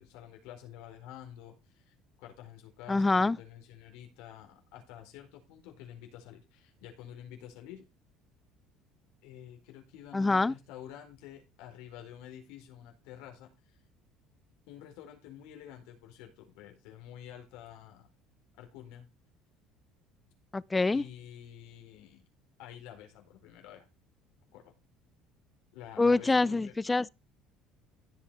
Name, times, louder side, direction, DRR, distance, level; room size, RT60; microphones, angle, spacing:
voice 1, 0.0-7.8 9.2-13.8 14.7-18.1 18.6-19.1 20.9-22.3 22.6-23.9 24.5-24.7 25.7-26.7, left 10 dB, 80° left, 4.3 m, -49 dB
voice 2, 2.9-3.4 10.1-10.5 20.5-21.0 26.0-27.1, left 3 dB, 15° left, 0.4 m, -25 dB
16.0 x 5.6 x 4.2 m
cardioid pair, 130°, 0 cm